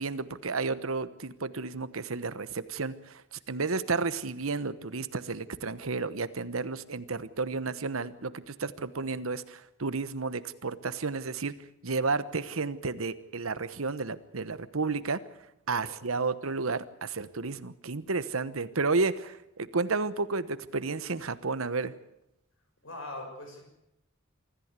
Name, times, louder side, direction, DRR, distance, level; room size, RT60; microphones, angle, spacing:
voice 1, 0.0-3.2 3.5-11.5 11.8-15.2 15.7-21.9, right 4 dB, 85° right, 14 dB, 1.1 m, -32 dB
voice 2, 15.7-16.2 22.8-23.7, left 2 dB, 70° left, 4 dB, 6.6 m, -43 dB
25.0 x 14.0 x 8.3 m, 0.86 s
head